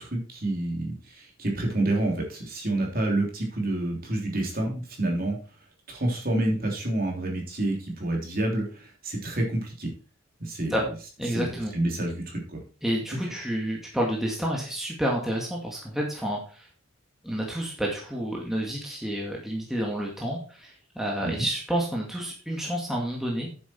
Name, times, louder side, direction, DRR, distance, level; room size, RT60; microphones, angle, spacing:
voice 1, 0.0-5.4 5.9-9.9 10.4-10.8 11.3-12.6 21.2-21.3, right 1 dB, 45° right, 0 dB, 3.2 m, -28 dB
voice 2, 11.2-11.7 12.8-16.7 17.2-23.5, equal, ahead, -3 dB, 2.1 m, -29 dB
9.4 x 7.5 x 4.4 m, 0.37 s
head